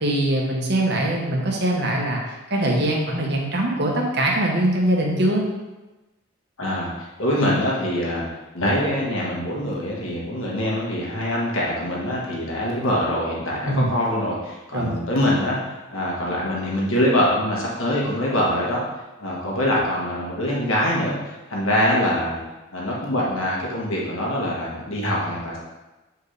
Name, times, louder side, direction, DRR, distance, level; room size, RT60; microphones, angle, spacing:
voice 1, 0.0-2.2 2.5-5.4 13.6-13.9 14.7-15.0, right 1 dB, 50° right, -1 dB, 1.3 m, -22 dB
voice 2, 6.6-8.3 8.5-18.8 19.2-22.4 22.7-25.6, left 1 dB, 75° left, -4 dB, 1.7 m, -24 dB
8.0 x 4.8 x 3.4 m, 1.1 s
head